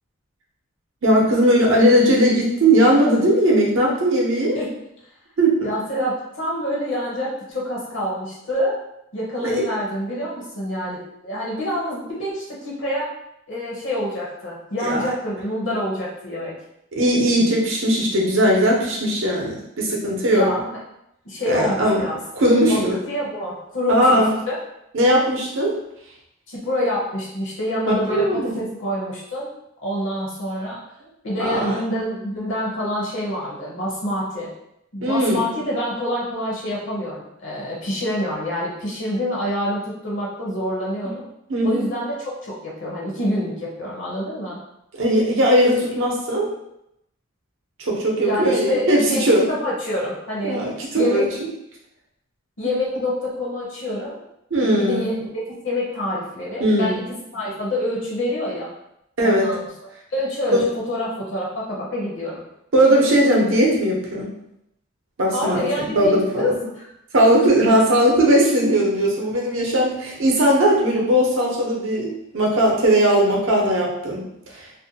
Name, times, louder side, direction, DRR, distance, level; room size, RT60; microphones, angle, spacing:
voice 1, 1.0-4.6 5.4-5.7 9.4-9.7 14.8-15.1 16.9-20.5 21.5-22.1 22.4-23.0 23.9-24.3 24.9-25.8 27.9-28.6 31.4-31.8 35.0-35.4 41.5-41.9 44.9-46.5 47.8-49.5 50.4-51.2 54.5-55.1 56.6-57.0 59.2-59.6 60.5-60.7 62.7-64.3 65.2-66.6 67.1-74.7, right 1 dB, 65° right, -2 dB, 0.6 m, -18 dB
voice 2, 5.6-8.8 9.1-13.1 13.5-16.6 20.3-20.8 21.2-22.1 22.5-24.2 24.5-24.6 26.5-29.5 29.8-30.8 31.2-34.5 34.9-41.2 41.6-42.1 42.4-44.6 48.2-50.6 50.9-51.3 52.6-54.2 54.6-57.0 57.3-58.7 59.2-59.6 60.1-62.5 65.3-66.5 66.8-66.9, left 1 dB, 55° left, -4 dB, 0.6 m, -26 dB
2.5 x 2.1 x 2.7 m, 0.81 s
head